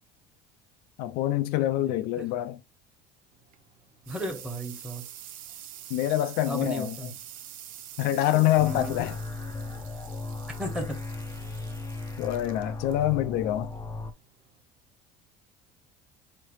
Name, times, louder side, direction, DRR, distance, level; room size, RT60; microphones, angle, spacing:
voice 1, 1.0-2.6 5.9-7.0 8.0-9.2 12.2-13.7, left 13 dB, 65° left, 0.5 m, -26 dB
voice 2, 1.8-2.3 4.1-5.0 6.5-7.2 8.6-9.0 10.6-11.0, equal, 5° right, 1.4 m, -34 dB
sound 1, 3.3-14.6, right 11 dB, 55° right, 0.6 m, -46 dB
sound 2, 8.6-14.1, left 3 dB, 20° left, 0.6 m, -36 dB
4.9 x 3.2 x 3.1 m
cardioid pair, 125°, 17 cm